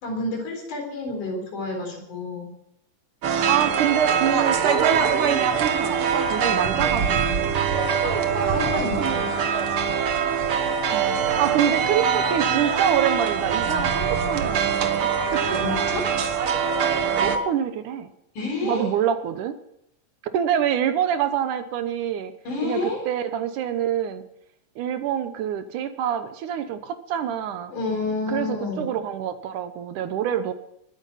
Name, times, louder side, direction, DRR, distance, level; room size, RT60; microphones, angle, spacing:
voice 1, 0.0-2.5 8.0-9.3 15.5-16.0 18.4-18.9 22.5-23.0 27.7-28.9, left 3 dB, 65° left, 2 dB, 5.4 m, -29 dB
sound 1, 3.2-17.4, right 6 dB, 55° right, 1.6 m, -23 dB
voice 2, 3.3-7.3 8.6-9.0 10.9-15.6 17.1-18.1 18.6-19.6 20.3-22.3 22.6-24.2 24.8-27.7 28.3-30.5, right 9 dB, 75° right, 10 dB, 2.3 m, -26 dB
21.5 x 9.5 x 5.6 m, 0.77 s
omnidirectional pair, 3.8 m